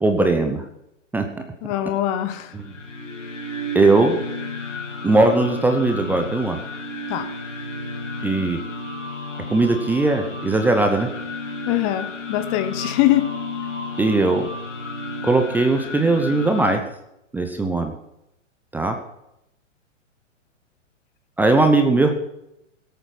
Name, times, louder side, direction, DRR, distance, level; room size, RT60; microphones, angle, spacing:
voice 1, 0.0-0.6 1.1-1.3 2.5-2.6 3.7-4.2 5.0-6.6 8.2-8.6 9.5-11.1 14.0-14.5 15.2-16.8 17.3-17.9 18.7-19.0 21.4-22.1, right 2 dB, 5° right, 5 dB, 0.7 m, -19 dB
voice 2, 1.6-2.5 7.1-7.3 11.7-13.4, left 13 dB, 25° left, 10 dB, 0.8 m, -22 dB
sound 1, 2.5-16.8, left 2 dB, 70° left, 2.4 m, -32 dB
17.5 x 8.5 x 6.0 m, 0.83 s
figure-of-eight pair, 115°, 38 cm